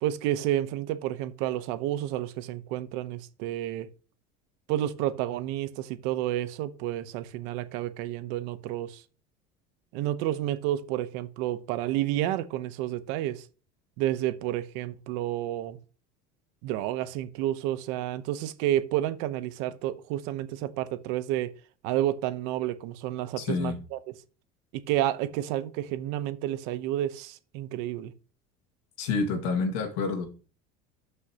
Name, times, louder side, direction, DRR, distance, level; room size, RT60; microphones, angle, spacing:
voice 1, 0.0-3.9 4.7-9.0 9.9-13.5 14.0-15.8 16.6-21.6 21.8-24.1 24.7-28.1, right 13 dB, 70° right, 0.9 m, -30 dB
voice 2, 23.4-23.8 29.0-30.3, left 4 dB, 80° left, 2.0 m, -28 dB
12.5 x 5.5 x 2.9 m
cardioid pair, 150°, 19 cm